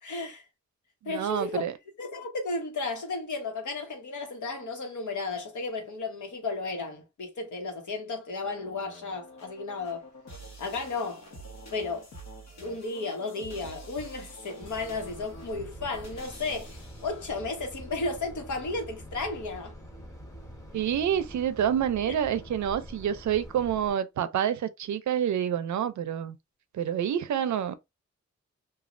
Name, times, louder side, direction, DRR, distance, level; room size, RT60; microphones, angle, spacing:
voice 1, 0.0-0.4 1.0-1.7 2.0-10.0 10.6-11.2 11.7-12.1 12.6-19.8, left 3 dB, 85° left, 1.1 m, -34 dB
voice 2, 1.0-1.7 20.7-26.4 26.7-27.8, right 9 dB, 75° right, 0.5 m, -28 dB
sound 1, 8.4-17.7, right 1 dB, 65° left, 1.0 m, -47 dB
sound 2, 14.6-23.9, equal, 10° left, 0.9 m, -45 dB
3.0 x 2.3 x 2.5 m
wide cardioid pair, 135°, 29 cm